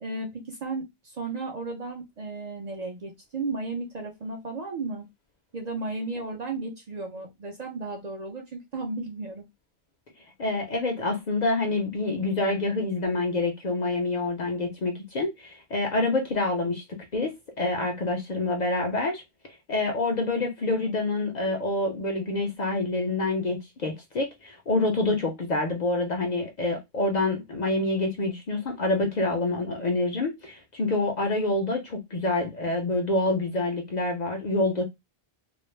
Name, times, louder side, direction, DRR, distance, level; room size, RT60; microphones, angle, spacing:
voice 1, 0.0-5.0 5.5-9.5, right 3 dB, 50° right, 0.6 m, -34 dB
voice 2, 10.4-16.8 17.1-19.2 19.7-34.8, left 2 dB, 55° left, 0.5 m, -27 dB
2.4 x 2.0 x 3.1 m
omnidirectional pair, 1.1 m